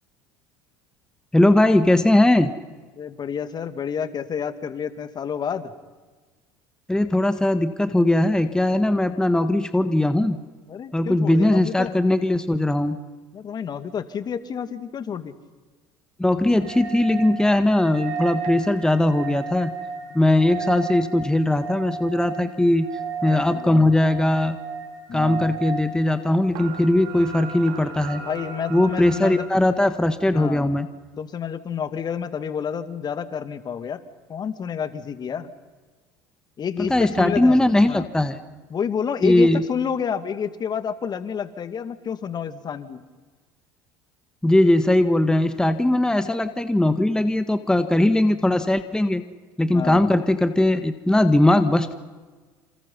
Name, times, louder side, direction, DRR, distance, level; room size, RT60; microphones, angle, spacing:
voice 1, 1.3-2.5 6.9-10.4 10.9-13.0 16.2-19.7 20.1-22.9 23.2-24.6 25.1-28.2 28.7-30.9 36.8-38.4 39.2-39.6 44.4-49.2 49.6-52.0, left 1 dB, 5° left, 10 dB, 1.5 m, -19 dB
voice 2, 3.0-5.7 10.7-11.9 13.3-15.4 20.1-20.2 23.4-23.9 25.1-25.6 28.3-29.5 30.3-30.8 31.2-34.0 34.3-35.5 36.6-37.6 37.9-38.1 38.7-43.0 49.7-50.1, left 7 dB, 40° left, 11 dB, 2.3 m, -29 dB
sound 1, 16.6-29.5, right 6 dB, 75° right, 5.3 m, -35 dB
28.5 x 28.0 x 5.6 m, 1.4 s
hypercardioid pair, 80°, 11 cm